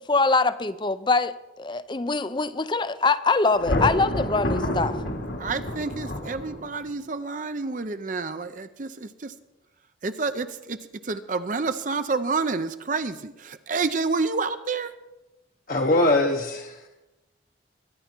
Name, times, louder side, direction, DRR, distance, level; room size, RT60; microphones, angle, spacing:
voice 1, 0.1-5.0, left 3 dB, 25° left, 0.5 m, -23 dB
Thunder, 3.5-6.9, left 1 dB, 80° left, 2.5 m, -28 dB
voice 2, 5.4-9.3 10.0-14.9, right 4 dB, 45° right, 0.6 m, -29 dB
voice 3, 15.7-16.9, left 2 dB, 45° left, 1.0 m, -22 dB
22.5 x 10.5 x 4.5 m
head